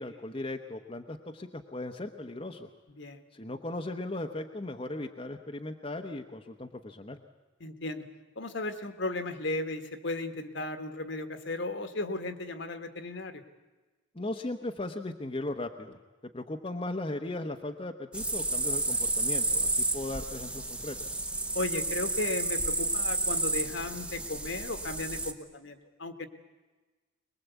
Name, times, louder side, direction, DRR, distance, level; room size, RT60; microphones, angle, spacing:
voice 1, 0.0-2.7 3.3-7.2 14.1-16.0 16.3-21.0, left 2 dB, 25° left, 3 dB, 0.9 m, -37 dB
voice 2, 7.6-8.0 8.3-13.4 21.5-26.3, left 2 dB, 60° left, 8 dB, 1.6 m, -35 dB
sound 1, 18.1-25.3, right 2 dB, 5° right, 0.9 m, -31 dB
23.0 x 21.0 x 8.2 m, 1.3 s
head